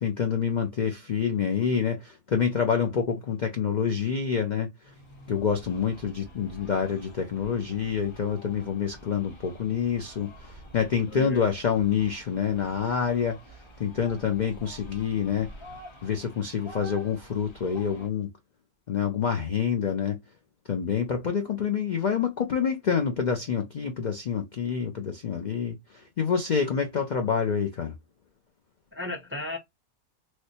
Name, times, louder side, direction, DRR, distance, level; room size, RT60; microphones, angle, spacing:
voice 1, 0.0-4.7 5.3-13.4 13.8-15.5 16.0-18.3 18.9-20.2 20.7-27.9, left 7 dB, 75° left, 0.4 m, -27 dB
sound 1, 4.8-18.1, equal, 25° left, 0.6 m, -48 dB
voice 2, 11.1-11.5 28.9-29.6, left 2 dB, 15° right, 0.4 m, -35 dB
3.2 x 2.0 x 4.1 m
omnidirectional pair, 1.5 m